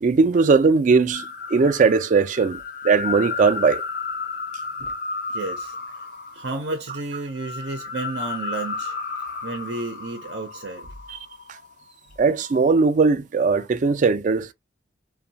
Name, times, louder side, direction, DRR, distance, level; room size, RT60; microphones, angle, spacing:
voice 1, 0.0-1.2 1.5-2.6 2.8-3.8 12.2-14.5, right 4 dB, 45° right, 0.4 m, -19 dB
sound 1, 1.1-11.7 12.2-12.7, left 4 dB, 55° left, 0.5 m, -33 dB
voice 2, 5.3-6.1 6.3-9.0 9.4-10.9 13.6-13.7, right 3 dB, 85° right, 0.6 m, -32 dB
2.6 x 2.2 x 2.8 m
head